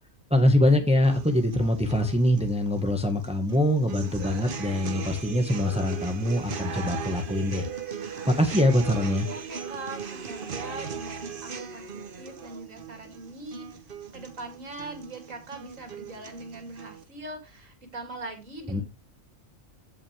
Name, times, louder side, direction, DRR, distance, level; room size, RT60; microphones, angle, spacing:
voice 1, 0.3-7.6 8.3-9.3 18.7-18.8, left 1 dB, 5° right, 6 dB, 1.4 m, -23 dB
sound 1, 1.0-17.0, right 6 dB, 45° right, 1.1 m, -38 dB
voice 2, 9.3-13.7 14.1-18.8, right 2 dB, 70° right, 4 dB, 3.3 m, -41 dB
15.0 x 5.6 x 3.4 m, 0.25 s
omnidirectional pair, 1.4 m